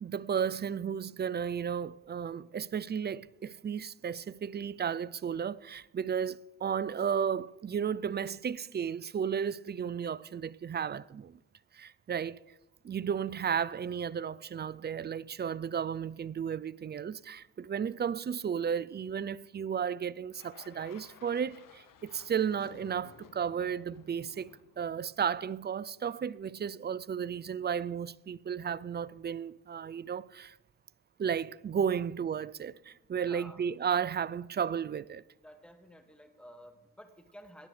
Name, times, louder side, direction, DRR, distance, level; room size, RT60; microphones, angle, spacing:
voice 1, 0.0-11.4 11.7-12.4 12.8-30.6 31.2-35.2, right 7 dB, 25° right, 0.4 m, -34 dB
sound 1, 20.3-25.7, left 7 dB, 55° left, 1.1 m, -56 dB
voice 2, 33.2-33.6 35.4-37.7, equal, 5° left, 1.9 m, -52 dB
18.0 x 10.5 x 3.3 m
supercardioid pair, 60°, 39 cm